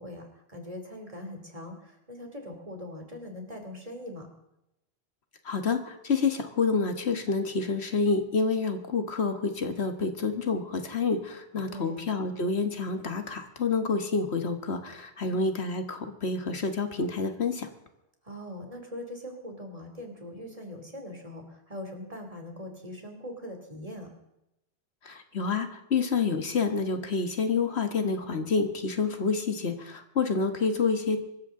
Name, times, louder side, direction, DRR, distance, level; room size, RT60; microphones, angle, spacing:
voice 1, 0.0-4.3 11.7-12.0 18.2-24.1, left 1 dB, 35° right, 3 dB, 3.0 m, -41 dB
voice 2, 5.4-17.7 25.0-31.2, left 4 dB, 75° left, 6 dB, 1.7 m, -28 dB
24.0 x 14.5 x 3.8 m, 0.86 s
omnidirectional pair, 1.1 m